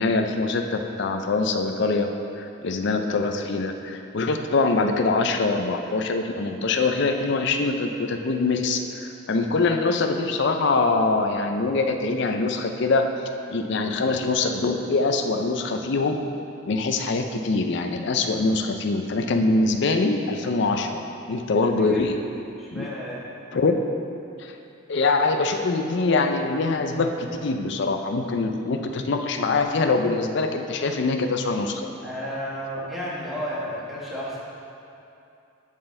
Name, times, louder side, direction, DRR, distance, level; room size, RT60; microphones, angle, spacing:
voice 1, 0.0-2.1 2.4-13.1 13.5-16.2 16.7-21.0 21.3-22.2 22.7-22.9 23.5-23.8 24.4-24.5 24.9-31.8, left 3 dB, 55° left, 5 dB, 0.5 m, -23 dB
voice 2, 21.6-22.0 22.6-23.2 32.0-34.4, equal, ahead, -8 dB, 1.3 m, -32 dB
11.0 x 4.0 x 3.8 m, 2.7 s
head